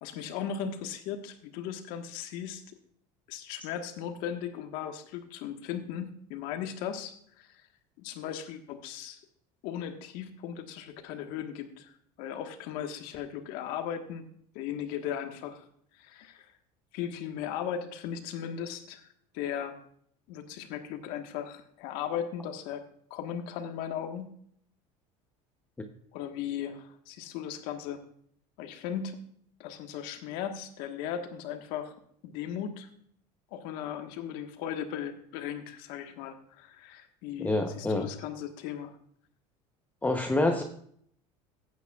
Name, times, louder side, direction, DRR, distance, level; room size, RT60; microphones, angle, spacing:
voice 1, 0.0-2.6 3.3-7.6 8.0-9.2 9.6-11.9 12.2-14.2 14.5-15.6 15.9-16.5 16.9-19.1 19.3-19.8 20.3-22.8 23.1-24.3 26.1-28.0 28.6-29.2 29.6-31.9 32.2-32.9 33.5-39.0, left 9 dB, 70° left, 6 dB, 1.4 m, -37 dB
voice 2, 37.4-38.1 40.0-40.6, left 2 dB, 10° left, 4 dB, 0.8 m, -27 dB
15.5 x 9.2 x 2.4 m, 0.64 s
cardioid pair, 130°, 15 cm